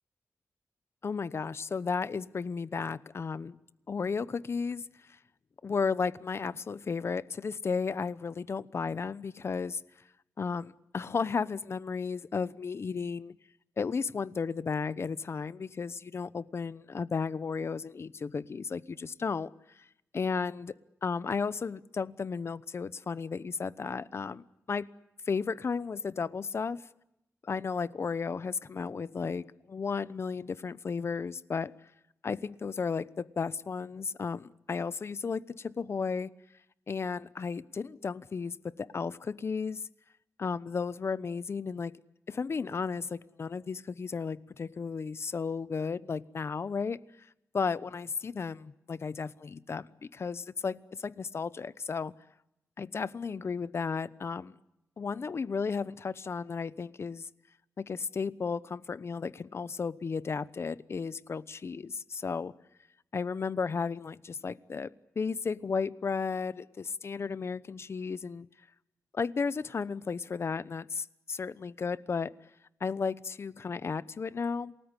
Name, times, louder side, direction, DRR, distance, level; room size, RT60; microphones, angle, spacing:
voice 1, 1.0-3.6 3.9-4.8 5.6-9.8 10.4-13.4 13.8-19.5 20.1-20.7 21.0-24.9 25.3-26.8 27.4-31.7 32.2-36.3 36.9-39.8 40.4-41.9 42.3-47.3 47.5-52.1 52.8-54.6 55.0-57.3 57.8-62.5 63.1-68.5 69.1-72.3 72.8-74.7, left 5 dB, 45° left, 18 dB, 0.9 m, -34 dB
28.5 x 19.5 x 9.9 m, 0.85 s
wide cardioid pair, 125°, 6 cm